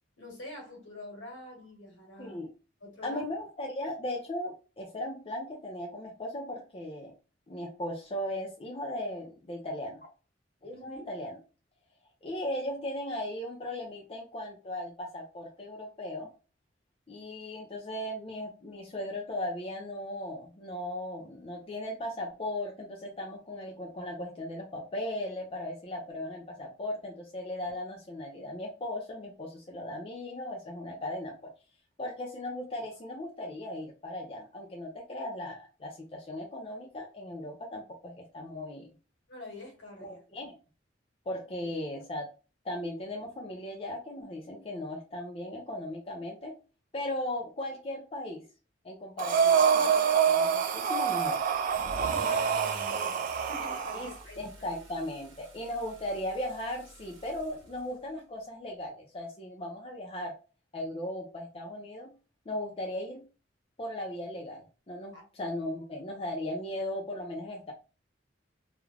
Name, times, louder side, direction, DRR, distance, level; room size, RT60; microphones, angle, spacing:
voice 1, 0.2-2.4 2.8-3.2 10.7-11.1 39.3-40.2 41.6-41.7 49.7-50.0 52.0-54.8 65.1-65.2, left 2 dB, 70° left, 0 dB, 1.1 m, -46 dB
voice 2, 3.0-7.1 7.5-10.0 10.6-11.3 12.2-16.3 17.1-31.3 32.0-38.9 40.0-40.6 41.3-42.3 42.6-46.5 46.9-48.4 48.8-51.4 52.0-52.1 53.9-60.4 60.7-62.1 62.5-63.2 63.8-67.7, left 1 dB, 30° left, -1 dB, 0.5 m, -37 dB
Breathing, 49.2-54.1, right 7 dB, 45° right, 0.3 m, -26 dB
Car / Engine starting / Accelerating revving vroom, 50.8-58.2, right 2 dB, 75° right, 0.8 m, -47 dB
2.4 x 2.1 x 3.2 m, 0.33 s
head